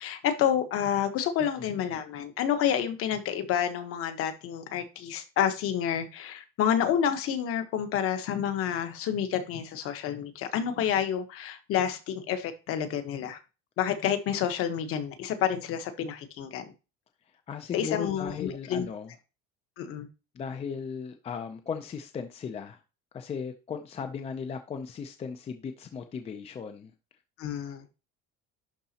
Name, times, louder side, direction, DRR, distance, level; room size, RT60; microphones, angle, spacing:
voice 1, 0.0-13.4 13.8-16.7 17.7-18.9 19.8-20.1 27.4-27.8, left 9 dB, 50° left, 8 dB, 1.2 m, -29 dB
voice 2, 1.4-1.7 17.3-19.1 20.3-22.8 23.1-26.9, left 6 dB, 20° left, 7 dB, 0.5 m, -37 dB
11.5 x 3.9 x 2.9 m, 0.29 s
cardioid pair, 160°, 29 cm